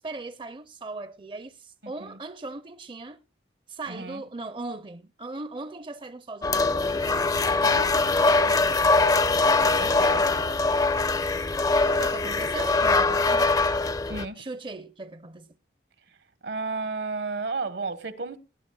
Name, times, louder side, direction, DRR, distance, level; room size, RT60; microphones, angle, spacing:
voice 1, 0.0-3.2 3.7-7.0 7.4-8.9 9.7-10.2 11.9-13.6 14.4-15.5, right 3 dB, 25° right, 0.5 m, -39 dB
voice 2, 1.8-2.2 3.9-4.2 7.6-8.7 9.7-10.5 14.1-14.4 16.1-16.2 16.4-18.4, right 3 dB, 70° right, 1.2 m, -34 dB
sound 1, 6.4-14.2, left 3 dB, 20° left, 0.5 m, -22 dB
19.0 x 11.0 x 2.3 m
head